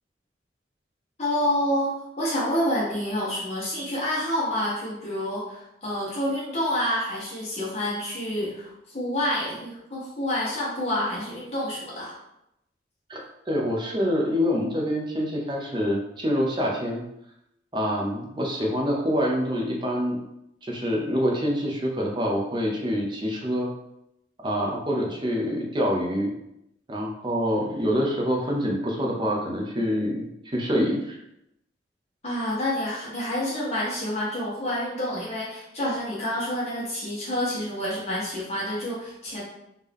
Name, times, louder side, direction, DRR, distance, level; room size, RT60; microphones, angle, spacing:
voice 1, 1.2-12.1 32.2-39.4, left 1 dB, 35° left, -7 dB, 1.4 m, -28 dB
voice 2, 13.1-17.0 17.7-20.2 20.6-23.7 24.4-26.3 26.9-31.1, equal, 25° right, -1 dB, 0.6 m, -26 dB
3.6 x 2.8 x 3.4 m, 0.83 s
head